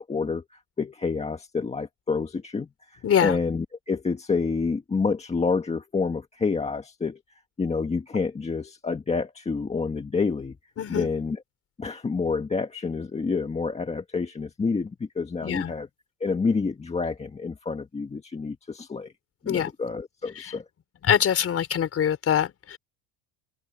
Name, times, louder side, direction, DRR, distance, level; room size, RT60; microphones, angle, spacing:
voice 1, 0.0-7.2 7.6-10.6 10.9-11.4 11.8-15.9 16.2-19.1 19.4-20.6, left 4 dB, 15° left, 1.6 m, -28 dB
voice 2, 3.0-3.4 10.8-11.1 15.4-15.7 19.5-19.7 20.4-20.5 21.0-22.8, left 9 dB, 30° left, 4.7 m, -24 dB
open air
cardioid pair, 145°, 43 cm